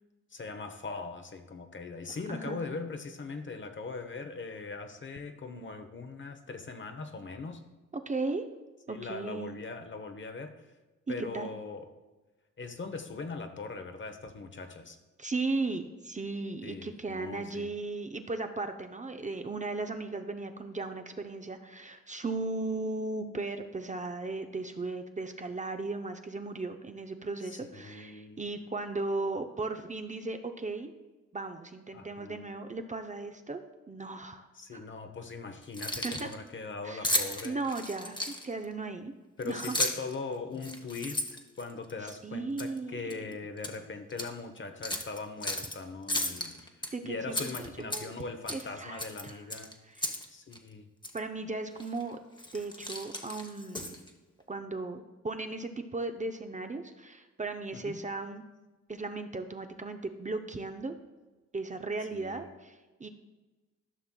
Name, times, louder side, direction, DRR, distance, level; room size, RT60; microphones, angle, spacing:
voice 1, 0.3-7.6 8.9-10.5 11.1-11.9 12.6-15.0 16.6-17.7 27.4-28.4 31.9-32.4 34.5-37.6 39.4-41.3 41.6-49.8 50.3-50.9 57.7-58.0 62.1-62.5, left 4 dB, 35° left, 7 dB, 0.9 m, -40 dB
voice 2, 2.3-2.6 7.9-8.5 8.9-9.5 11.1-11.5 15.2-30.9 31.3-33.6 33.9-34.8 36.0-36.3 36.8-37.2 37.4-39.1 39.4-39.8 42.1-43.2 46.9-48.1 48.5-49.4 49.9-50.1 51.1-52.2 52.5-53.9 54.5-58.4 58.9-60.9 61.5-63.1, right 3 dB, 25° right, 6 dB, 0.6 m, -36 dB
Keys jangling, 35.6-36.3 37.0-38.6 39.4-40.1 40.6-42.1 42.6-42.8 43.1-43.8 44.1-44.3 44.8-45.7 46.1-46.9 47.3-48.2 48.5-48.7 49.0-50.3 50.5-50.6 51.0-51.2 51.8-52.0 52.4-54.1, left 1 dB, 15° left, 1.1 m, -34 dB
13.0 x 5.7 x 2.3 m, 1.2 s
supercardioid pair, 55°, 32 cm